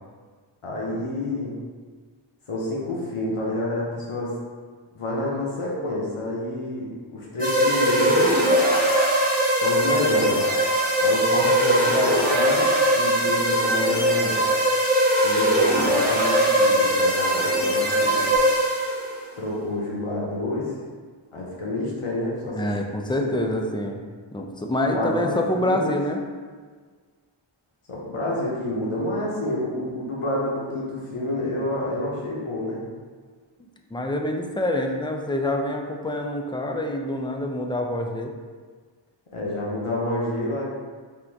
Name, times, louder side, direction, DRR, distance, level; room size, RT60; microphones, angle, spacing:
voice 1, 0.6-1.5 2.5-4.4 4.9-8.4 9.6-10.5 11.0-12.7 13.0-14.5 15.2-18.3 19.4-20.7 21.3-22.7 23.2-23.5 24.9-25.9 27.9-32.8 39.3-40.6, left 1 dB, 90° left, -5 dB, 0.8 m, -28 dB
sound 1, 7.4-19.2, equal, 15° right, 1.1 m, -20 dB
voice 2, 22.5-24.0 24.3-26.2 33.9-38.3, left 1 dB, 10° left, 2 dB, 0.4 m, -26 dB
3.6 x 2.5 x 4.5 m, 1.6 s
wide cardioid pair, 40°, 50 cm